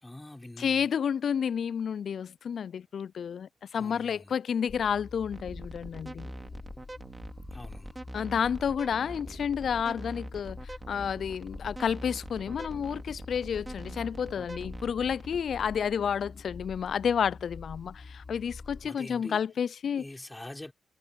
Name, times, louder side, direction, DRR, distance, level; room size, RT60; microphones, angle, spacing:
voice 1, 0.0-0.9 3.7-4.4 7.5-7.9 18.8-19.4 19.9-20.7, left 1 dB, 20° left, 5.0 m, -44 dB
voice 2, 0.6-6.3 8.1-20.0, left 7 dB, 70° left, 0.3 m, -30 dB
sound 1, 4.7-18.9, left 4 dB, 45° left, 5.5 m, -46 dB
sound 2, 5.3-15.4, right 2 dB, 25° right, 3.1 m, -43 dB
supercardioid pair, 50°, 0 cm